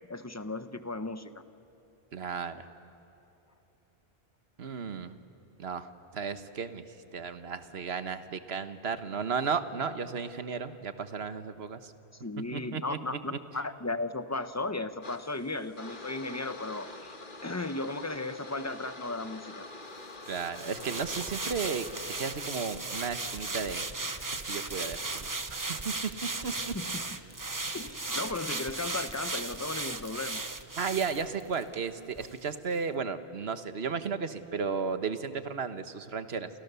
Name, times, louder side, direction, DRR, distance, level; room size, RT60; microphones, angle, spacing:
voice 1, 0.1-1.3 12.2-17.1 17.4-19.7 26.7-27.0 27.7-30.5, left 2 dB, 15° left, 11 dB, 0.8 m, -35 dB
voice 2, 2.1-2.6 4.6-5.1 5.6-6.8 7.1-11.9 12.5-13.2 20.3-21.9 22.2-25.9 26.4-26.5 30.8-36.5, right 5 dB, 75° right, 10 dB, 1.4 m, -34 dB
sound 1, 15.0-22.5, left 2 dB, 50° left, 1.9 m, -46 dB
sound 2, 20.2-31.8 32.2-32.3, right 3 dB, 20° right, 0.8 m, -36 dB
29.5 x 28.5 x 6.9 m, 2.9 s
omnidirectional pair, 1.1 m